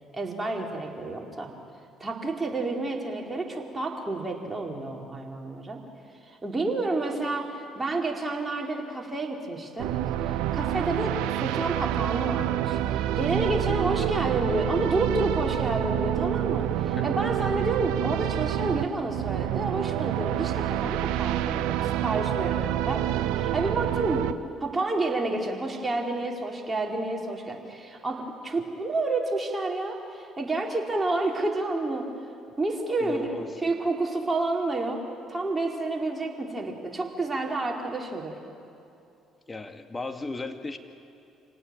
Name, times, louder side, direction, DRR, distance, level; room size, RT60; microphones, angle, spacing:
voice 1, 0.1-1.5 2.0-5.8 6.3-9.9 10.2-24.3 24.6-32.1 32.6-33.3 33.6-35.0 35.3-38.3, right 2 dB, 20° right, 0 dB, 4.5 m, -30 dB
sound 1, 9.8-24.3, right 12 dB, 70° right, 0.8 m, -27 dB
voice 2, 33.0-33.5 39.5-40.8, left 3 dB, 25° left, 7 dB, 2.3 m, -35 dB
27.0 x 18.0 x 9.0 m, 2.7 s
hypercardioid pair, 50°, 0 cm